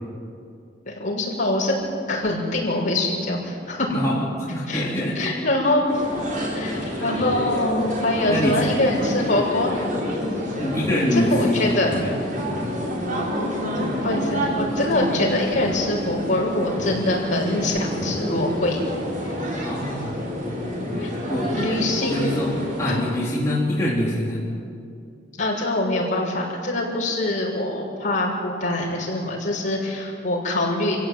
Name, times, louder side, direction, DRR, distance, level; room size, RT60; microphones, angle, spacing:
voice 1, 0.8-1.7 2.1-3.9 4.7-5.9 6.5-9.8 11.1-12.0 13.7-18.8 19.2-19.4 21.0-21.1 21.5-22.4 22.9-23.0 25.4-31.0, left 1 dB, 45° left, -4 dB, 6.7 m, -24 dB
voice 2, 3.9-4.2 4.5-5.3 8.3-8.6 10.6-12.2 12.5-12.7 19.6-21.6 22.0-24.4, left 1 dB, 15° left, -7 dB, 3.7 m, -25 dB
sound 1, 5.9-23.0, equal, 45° right, 5.4 m, -28 dB
27.5 x 16.0 x 9.3 m, 2.4 s
head